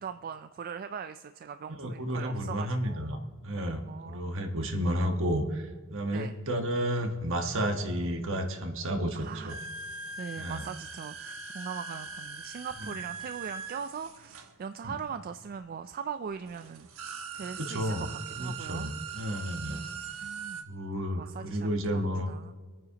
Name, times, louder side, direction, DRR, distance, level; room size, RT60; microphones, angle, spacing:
voice 1, 0.0-3.1 3.9-4.2 4.8-5.2 6.1-6.3 9.1-9.5 10.2-18.9 19.7-20.7 21.2-22.5, right 6 dB, 45° right, 9 dB, 0.3 m, -41 dB
voice 2, 1.8-9.6 10.4-10.6 12.8-12.9 14.8-14.9 17.6-18.1 18.4-19.8 20.7-22.3, equal, 65° right, 4 dB, 1.4 m, -32 dB
sound 1, 9.5-15.2 16.0-16.1 16.4-20.6, right 5 dB, 85° right, 1.1 m, -41 dB
26.0 x 9.2 x 2.9 m, 1.5 s
head